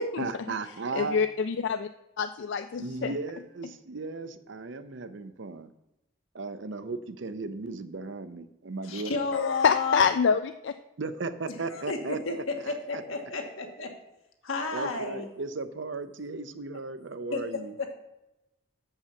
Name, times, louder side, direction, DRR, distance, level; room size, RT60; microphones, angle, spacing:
voice 1, 0.2-1.2 2.8-5.7 6.3-9.1 11.0-13.0 14.7-17.7, right 3 dB, 65° right, 11 dB, 0.6 m, -36 dB
voice 2, 0.9-1.9 2.2-3.1 9.3-10.7, left 6 dB, 60° left, 9 dB, 0.3 m, -26 dB
voice 3, 8.8-10.0 11.7-13.9 14.4-15.3 17.3-17.4 17.8-17.9, left 4 dB, 85° left, 3 dB, 1.4 m, -31 dB
7.1 x 5.6 x 6.8 m, 0.93 s
head